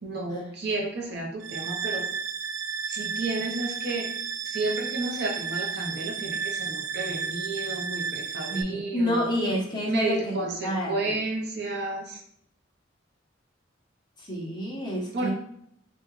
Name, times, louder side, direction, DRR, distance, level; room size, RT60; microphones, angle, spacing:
voice 1, 0.0-2.1 2.9-4.1 4.4-9.3 9.8-12.2 15.1-15.3, right 2 dB, 60° right, -1 dB, 0.8 m, -31 dB
sound 1, 1.4-8.6, right 6 dB, 90° right, 0.4 m, -32 dB
voice 2, 8.5-11.1 14.2-15.3, equal, 25° left, -4 dB, 0.9 m, -29 dB
3.5 x 2.3 x 3.1 m, 0.69 s
head